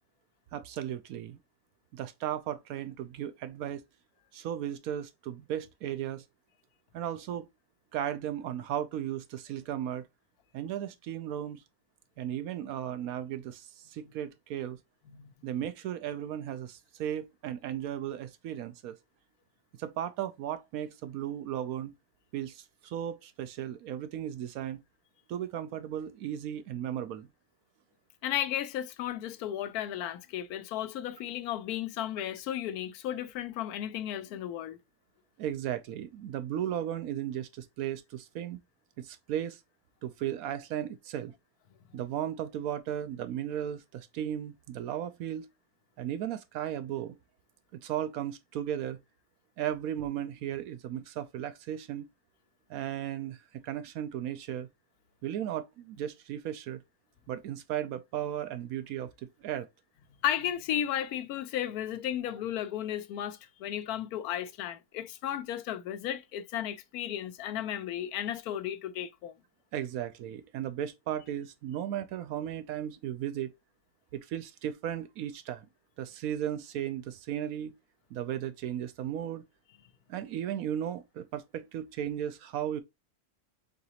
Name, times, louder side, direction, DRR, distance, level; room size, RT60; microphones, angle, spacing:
voice 1, 0.5-1.4 1.9-3.8 4.3-6.2 6.9-7.5 7.9-10.0 10.5-11.6 12.2-14.8 15.4-19.0 19.8-21.9 22.3-24.8 25.3-27.3 35.4-38.6 39.0-39.6 40.0-41.3 41.9-45.5 46.0-47.2 47.7-49.0 49.6-52.1 52.7-54.7 55.2-56.8 57.3-59.1 59.4-59.7 69.7-73.5 74.1-75.7 76.0-77.7 78.1-79.4 80.1-82.8, right 10 dB, 75° right, 1.0 m, -35 dB
voice 2, 15.1-15.5 28.2-34.8 60.2-69.3, left 11 dB, 85° left, 1.1 m, -34 dB
4.0 x 3.8 x 2.8 m
omnidirectional pair, 1.6 m